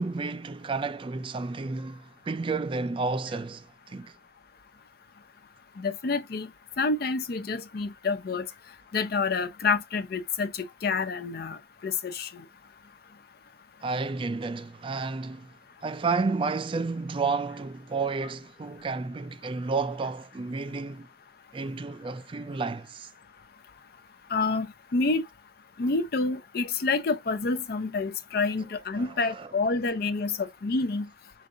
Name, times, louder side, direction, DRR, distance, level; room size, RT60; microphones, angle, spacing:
voice 1, 0.0-4.1 13.8-15.5 15.8-21.1 21.5-23.1 29.0-29.5, right 4 dB, 30° right, 0.3 m, -31 dB
voice 2, 5.8-6.5 6.8-8.4 8.9-11.6 11.8-12.3 24.3-24.7 24.9-25.2 25.8-31.1, left 4 dB, 55° left, 0.5 m, -28 dB
5.1 x 2.5 x 3.7 m
head